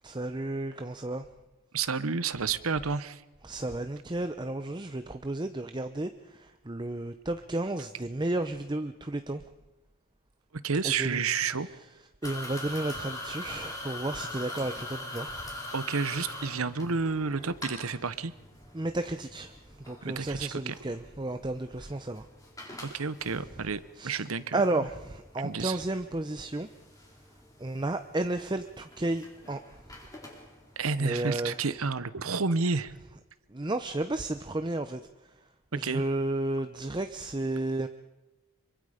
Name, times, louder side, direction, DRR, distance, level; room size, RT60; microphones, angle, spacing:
voice 1, 0.0-1.2 3.4-6.1 6.7-9.4 11.0-11.2 12.2-15.4 18.7-19.5 19.9-22.2 24.0-24.2 24.5-26.7 27.6-29.6 31.0-31.5 33.5-35.0 35.7-37.9, right 2 dB, 20° right, 9 dB, 0.7 m, -32 dB
voice 2, 1.7-3.2 10.6-11.7 15.7-18.3 20.0-20.8 22.8-24.9 25.4-25.8 30.8-32.9 35.7-36.0, right 4 dB, 90° right, 14 dB, 1.0 m, -30 dB
sound 1, 12.2-31.7, left 2 dB, 15° left, 3.9 m, -44 dB
26.0 x 24.0 x 5.0 m, 1.0 s
head